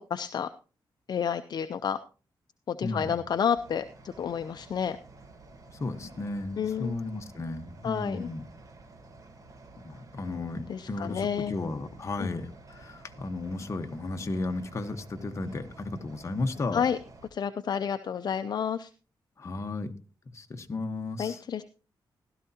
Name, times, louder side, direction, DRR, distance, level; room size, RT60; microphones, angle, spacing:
voice 1, 0.1-0.5 1.1-2.0 2.7-5.0 6.6-7.0 7.8-8.3 10.7-11.5 12.2-12.3 16.7-17.0 17.3-18.9 21.2-21.6, left 7 dB, 55° left, 10 dB, 0.5 m, -30 dB
voice 2, 2.8-3.3 5.7-8.4 9.8-16.8 19.4-19.9 20.3-21.4, left 2 dB, 35° left, 6 dB, 1.2 m, -34 dB
sound 1, 3.5-17.3, right 3 dB, 40° right, 1.5 m, -52 dB
16.0 x 12.5 x 2.8 m, 0.37 s
wide cardioid pair, 130°, 9 cm